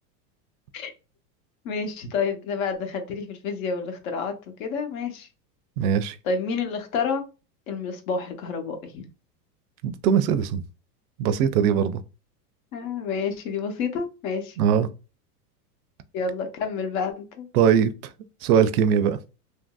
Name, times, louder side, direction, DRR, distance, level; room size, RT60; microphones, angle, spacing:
voice 1, 1.6-5.3 6.2-7.2 7.7-9.0 12.7-14.6 16.1-17.5, left 5 dB, 55° left, 0.9 m, -29 dB
voice 2, 5.8-6.2 9.8-10.6 11.2-12.0 14.6-14.9 17.5-17.9 18.4-19.2, right 8 dB, 65° right, 0.5 m, -20 dB
2.9 x 2.6 x 2.2 m
supercardioid pair, 140°, 49 cm